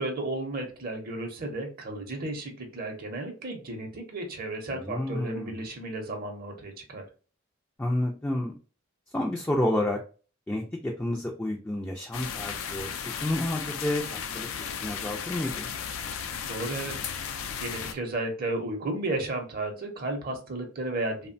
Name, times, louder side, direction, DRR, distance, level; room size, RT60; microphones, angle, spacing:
voice 1, 0.0-7.1 16.4-21.3, right 2 dB, 45° right, 3 dB, 0.6 m, -33 dB
voice 2, 4.7-5.6 7.8-8.5 9.1-10.0 10.5-12.9 13.2-15.7, left 1 dB, 10° left, -1 dB, 0.3 m, -30 dB
sound 1, 12.1-17.9, left 7 dB, 80° left, 0.4 m, -35 dB
3.0 x 2.1 x 2.5 m, 0.37 s
head